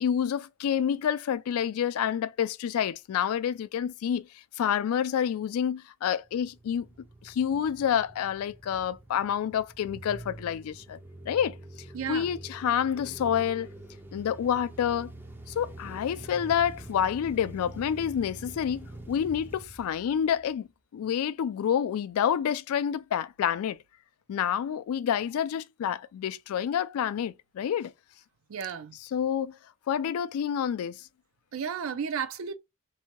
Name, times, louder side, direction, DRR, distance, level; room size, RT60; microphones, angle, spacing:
voice 1, 0.0-4.3 4.6-6.9 7.2-11.0 11.3-11.6 12.1-13.7 14.1-15.1 15.5-20.7 20.9-23.8 24.3-27.9 28.9-29.6 29.9-31.1, left 8 dB, 80° left, 0.3 m, -28 dB
sound 1, 6.3-20.6, right 1 dB, 10° right, 0.4 m, -46 dB
voice 2, 11.9-12.3 28.5-28.9 31.5-32.5, right 7 dB, 70° right, 0.4 m, -33 dB
2.7 x 2.2 x 2.9 m
head